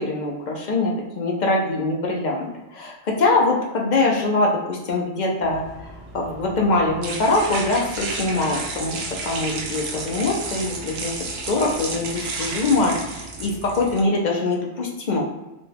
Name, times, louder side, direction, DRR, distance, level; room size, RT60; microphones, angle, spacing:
voice 1, 0.0-11.1 11.5-15.2, left 2 dB, 55° left, -1 dB, 0.5 m, -23 dB
sound 1, 5.4-14.0, right 3 dB, 60° right, 0.8 m, -32 dB
4.1 x 2.2 x 3.3 m, 1.0 s
omnidirectional pair, 1.3 m